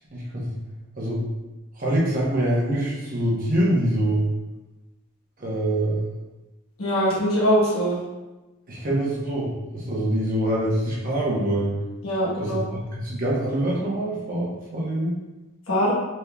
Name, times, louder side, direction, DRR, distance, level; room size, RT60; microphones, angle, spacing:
voice 1, 0.1-0.6 1.0-1.2 1.7-4.3 5.4-6.0 8.7-11.8 12.4-15.2, right 1 dB, 40° right, -5 dB, 1.0 m, -25 dB
voice 2, 6.8-8.0 12.0-12.6 15.7-15.9, equal, 80° left, -7 dB, 1.1 m, -22 dB
4.2 x 3.5 x 2.3 m, 1.1 s
head